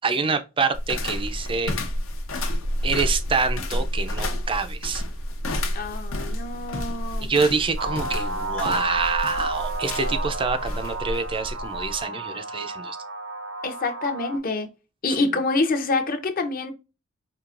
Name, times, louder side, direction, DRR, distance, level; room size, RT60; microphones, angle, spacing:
voice 1, 0.0-1.7 2.8-5.0 7.2-13.0, right 4 dB, 25° right, 0.4 m, -26 dB
sound 1, 0.7-12.0, left 1 dB, 75° left, 0.9 m, -30 dB
voice 2, 5.7-7.3 13.6-14.7 15.0-16.7, left 3 dB, 45° left, 0.7 m, -26 dB
sound 2, 7.8-14.4, right 2 dB, 70° right, 0.8 m, -32 dB
4.6 x 2.8 x 2.4 m
head